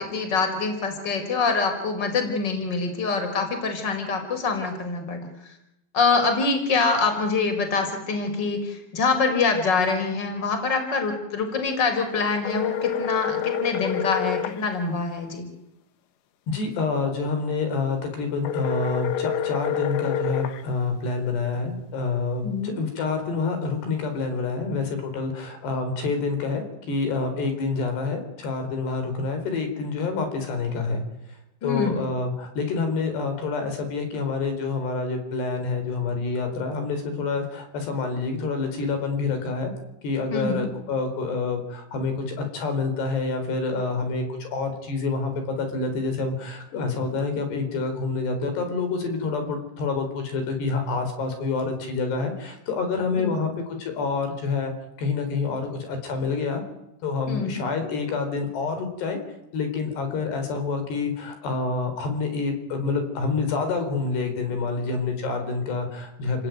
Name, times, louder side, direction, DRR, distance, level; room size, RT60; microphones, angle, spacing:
voice 1, 0.0-5.5 5.9-15.5 22.4-22.8 31.6-31.9 40.3-40.7 53.1-53.4 57.3-57.6, left 4 dB, 25° left, 6 dB, 5.0 m, -25 dB
sound 1, 12.5-14.6 18.5-20.6, left 9 dB, 90° left, 3.8 m, -27 dB
voice 2, 16.5-31.0 31.6-39.7 40.0-54.7 55.0-56.6 57.0-59.2 59.5-66.5, left 4 dB, 70° left, 6 dB, 6.3 m, -27 dB
30.0 x 19.5 x 9.4 m, 0.86 s
omnidirectional pair, 5.0 m